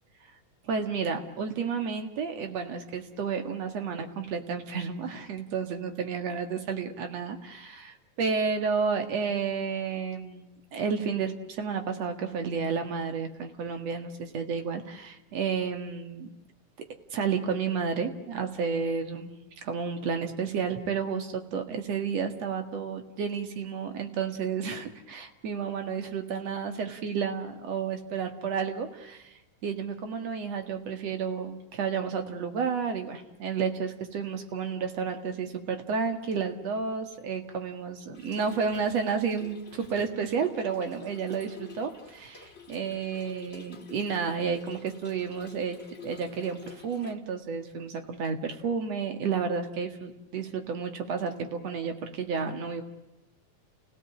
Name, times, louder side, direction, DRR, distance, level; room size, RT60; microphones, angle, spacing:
voice 1, 0.6-16.3 17.1-19.3 19.6-52.8, right 6 dB, 55° right, 6 dB, 2.9 m, -31 dB
Trickle dribble / Fill (with liquid), 38.1-47.1, left 5 dB, 25° left, 1.4 m, -50 dB
29.5 x 17.5 x 8.6 m, 0.96 s
omnidirectional pair, 3.7 m